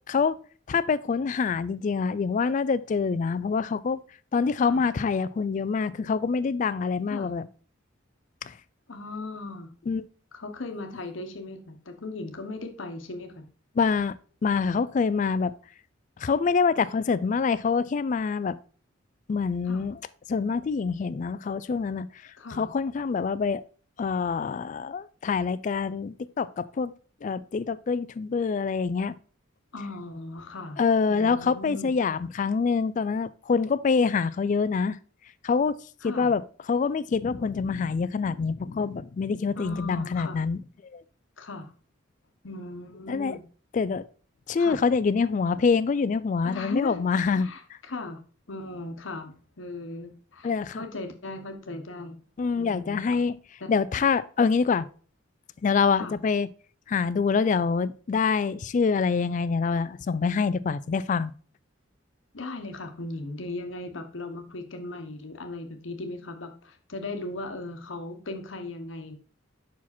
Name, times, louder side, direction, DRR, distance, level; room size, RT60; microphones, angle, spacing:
voice 1, 0.7-4.0 4.3-7.5 8.4-8.5 9.9-10.0 13.8-14.2 14.4-15.5 16.2-18.6 19.3-20.0 20.3-22.1 22.5-23.6 24.0-26.9 27.2-29.1 30.8-35.0 35.4-35.8 36.0-36.4 36.7-40.6 40.9-41.0 43.1-43.4 43.7-44.0 44.5-47.5 50.4-50.8 52.4-53.4 53.7-54.9 55.6-56.5 56.9-61.3, left 5 dB, 40° left, 0.3 m, -25 dB
voice 2, 8.9-9.7 10.3-13.4 19.7-19.9 22.4-22.7 29.7-30.8 31.1-31.9 36.0-36.3 39.6-40.4 41.4-41.7 42.4-43.4 44.6-44.8 46.4-47.0 47.3-48.2 48.5-52.2 52.6-53.0 53.6-53.7 56.0-56.2 62.3-69.2, left 2 dB, 75° left, 1.0 m, -37 dB
5.8 x 4.8 x 4.2 m
head